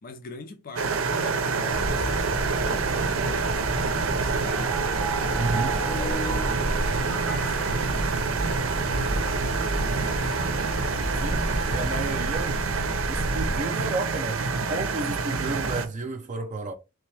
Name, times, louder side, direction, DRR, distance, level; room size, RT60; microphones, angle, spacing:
voice 1, 0.0-4.3 5.8-8.2 8.9-10.3, left 3 dB, 45° left, 0.5 m, -43 dB
sound 1, 0.8-15.9, right 4 dB, 90° right, 0.6 m, -27 dB
sound 2, 1.7-13.6, equal, 75° left, 2.0 m, -32 dB
sound 3, 4.5-8.8, right 2 dB, 5° left, 0.7 m, -36 dB
voice 2, 5.3-5.8 11.2-12.6 13.1-16.7, right 2 dB, 40° right, 0.5 m, -32 dB
3.4 x 2.9 x 3.3 m
head